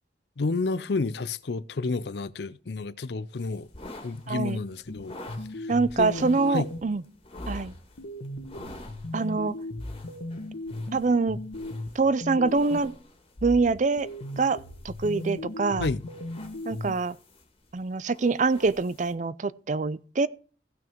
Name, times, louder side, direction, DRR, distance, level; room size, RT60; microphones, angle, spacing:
voice 1, 0.4-3.7 4.0-5.2 5.5-5.7 6.0-6.7 15.8-16.0, left 3 dB, 65° left, 0.5 m, -30 dB
sound 1, 3.4-19.1, left 1 dB, 30° left, 2.1 m, -49 dB
voice 2, 4.3-4.6 5.7-7.0 7.5-7.7 9.1-9.5 10.9-11.4 11.9-12.9 13.4-14.1 14.3-14.6 14.8-15.9 16.6-17.2 17.7-20.3, right 4 dB, 45° right, 0.5 m, -25 dB
sound 2, 4.9-7.0 7.4-13.0 13.4-16.9, left 1 dB, 85° left, 1.2 m, -37 dB
16.0 x 6.2 x 4.5 m
head